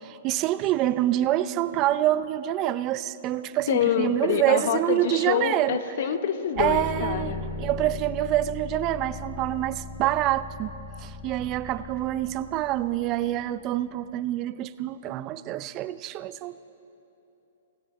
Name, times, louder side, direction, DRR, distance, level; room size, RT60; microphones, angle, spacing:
voice 1, 0.0-5.8 6.6-10.7 11.0-16.6, right 14 dB, 30° right, 15 dB, 0.4 m, -26 dB
voice 2, 3.7-7.4, left 8 dB, 60° left, 10 dB, 0.9 m, -26 dB
sound 1, 6.6-13.5, left 3 dB, 30° left, 2.2 m, -38 dB
17.0 x 16.5 x 4.3 m, 3.0 s
hypercardioid pair, 145°, 0 cm